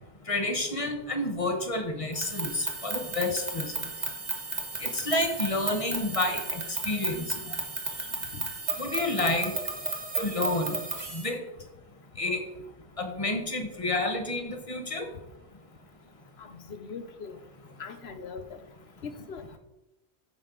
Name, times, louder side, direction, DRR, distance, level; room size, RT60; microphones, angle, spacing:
voice 1, 0.3-3.7 4.8-7.3 8.8-9.5 10.1-10.8 11.1-11.4 12.2-12.4 13.0-15.1, left 2 dB, 30° left, 5 dB, 1.2 m, -29 dB
sound 1, 2.1-11.3, right 3 dB, 40° right, 1.3 m, -34 dB
voice 2, 16.4-17.4 17.8-18.6 19.0-19.6, left 5 dB, 70° left, 9 dB, 1.1 m, -41 dB
13.5 x 5.3 x 3.9 m, 0.96 s
omnidirectional pair, 1.1 m